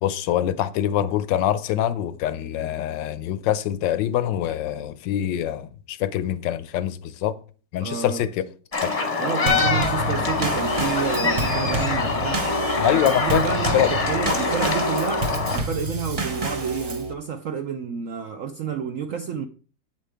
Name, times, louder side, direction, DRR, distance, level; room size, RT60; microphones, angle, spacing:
voice 1, 0.0-7.3 7.7-8.4 8.8-8.9 12.8-13.9, left 11 dB, 85° left, 1.3 m, -24 dB
voice 2, 7.8-8.3 9.2-12.5 12.9-15.3 15.5-19.5, right 6 dB, 75° right, 0.7 m, -30 dB
sound 1, 8.7-15.6, left 3 dB, 25° left, 0.8 m, -24 dB
Drum kit / Snare drum / Bass drum, 9.5-17.1, right 2 dB, 45° right, 0.4 m, -29 dB
8.4 x 7.4 x 3.4 m
omnidirectional pair, 1.9 m